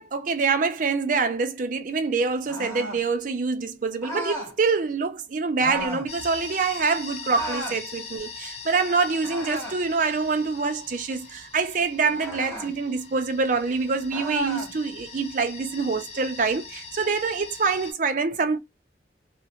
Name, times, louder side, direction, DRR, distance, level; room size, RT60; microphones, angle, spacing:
voice 1, 0.0-18.6, right 4 dB, 50° right, 0.5 m, -25 dB
sound 1, 2.5-3.0 4.0-4.5 5.6-6.1 7.3-7.8 9.2-9.9 12.1-12.7 14.1-14.7, equal, 15° left, 1.0 m, -33 dB
sound 2, 6.1-17.9, left 5 dB, 40° left, 0.5 m, -42 dB
2.4 x 2.1 x 2.8 m
head